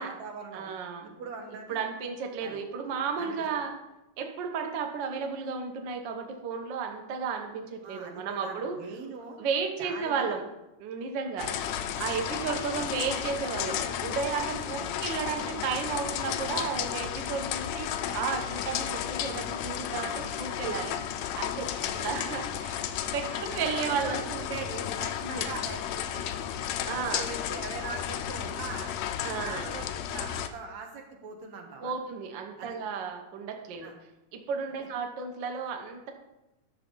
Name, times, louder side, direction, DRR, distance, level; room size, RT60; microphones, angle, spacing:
voice 1, 0.0-0.7 1.0-1.9 2.4-2.6 3.2-3.4 7.8-9.4 9.8-10.4 11.4-11.5 12.7-12.9 14.8-14.9 21.8-22.1 23.3-26.4 27.1-28.9 29.5-31.9 32.6-32.8 33.8-33.9, right 4 dB, 65° right, 2 dB, 2.4 m, -41 dB
voice 2, 0.5-1.1 1.7-3.7 4.2-8.8 9.4-10.4 10.8-11.5 12.0-17.9 18.1-21.0 21.3-21.7 22.0-24.2 25.2-25.6 26.1-26.2 26.9-27.3 29.2-29.7 31.8-33.9 34.3-36.1, right 6 dB, 80° right, 3 dB, 1.0 m, -33 dB
sound 1, 11.4-30.5, left 10 dB, 85° left, 1.6 m, -33 dB
11.5 x 6.9 x 3.9 m, 0.95 s
omnidirectional pair, 3.7 m